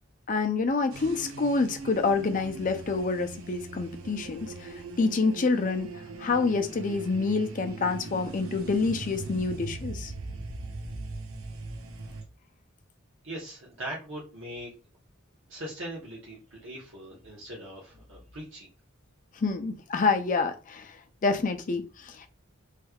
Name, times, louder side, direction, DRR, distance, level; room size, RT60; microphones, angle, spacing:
voice 1, 0.3-5.9 6.2-10.1 19.4-20.9 21.2-22.3, left 4 dB, 40° left, 0.5 m, -27 dB
sound 1, 0.9-12.2, right 3 dB, 85° right, 0.6 m, -40 dB
voice 2, 13.2-14.7 15.5-18.7, right 1 dB, 65° right, 1.2 m, -40 dB
3.2 x 3.2 x 2.3 m
head